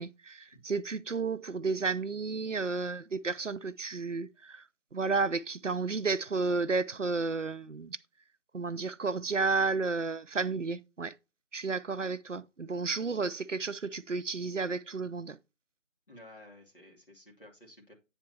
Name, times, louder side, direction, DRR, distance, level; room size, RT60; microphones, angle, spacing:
voice 1, 0.0-4.6 4.9-8.0 8.5-11.1 11.5-15.4, right 4 dB, 70° right, 0.7 m, -32 dB
voice 2, 16.1-17.9, left 1 dB, 45° left, 2.6 m, -53 dB
8.8 x 6.6 x 2.8 m
figure-of-eight pair, 180°, 38 cm